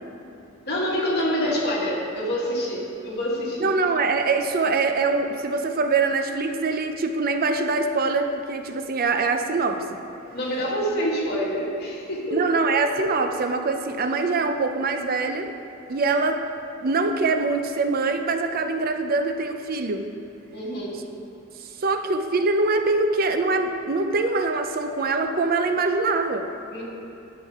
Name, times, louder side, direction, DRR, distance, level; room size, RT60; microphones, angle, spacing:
voice 1, 0.7-3.6 10.3-12.4 20.5-21.0 26.7-26.8, equal, 55° left, -5 dB, 2.0 m, -26 dB
voice 2, 3.6-10.0 12.3-15.5 15.9-16.4 16.8-20.1 21.6-26.5, right 3 dB, 45° right, 7 dB, 0.5 m, -23 dB
11.0 x 7.3 x 3.6 m, 3.0 s
head